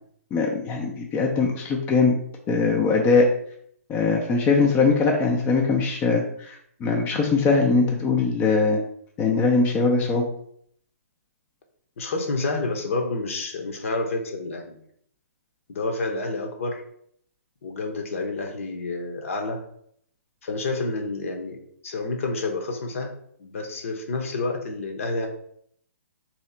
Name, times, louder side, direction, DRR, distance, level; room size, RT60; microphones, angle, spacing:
voice 1, 0.3-2.2 2.5-3.3 3.9-6.6 6.8-8.8 9.2-10.2, left 4 dB, 20° left, 0 dB, 0.5 m, -21 dB
voice 2, 12.0-14.8 15.7-16.8 17.6-19.6 20.4-21.6 21.8-23.1 23.4-25.3, left 3 dB, 60° left, 3 dB, 0.9 m, -29 dB
3.1 x 2.9 x 4.3 m, 0.66 s
hypercardioid pair, 140°, 8 cm